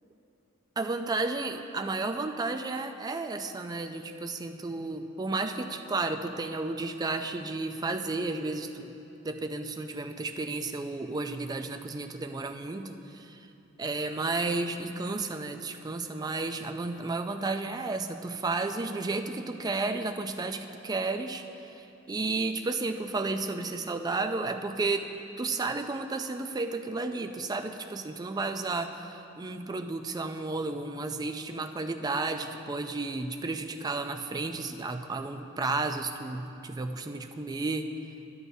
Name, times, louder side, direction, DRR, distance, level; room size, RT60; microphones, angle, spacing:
voice 1, 0.8-8.9 9.2-13.5 13.8-25.1 25.4-37.9, right 3 dB, 20° right, 6 dB, 0.4 m, -32 dB
12.5 x 11.0 x 2.7 m, 2.9 s
head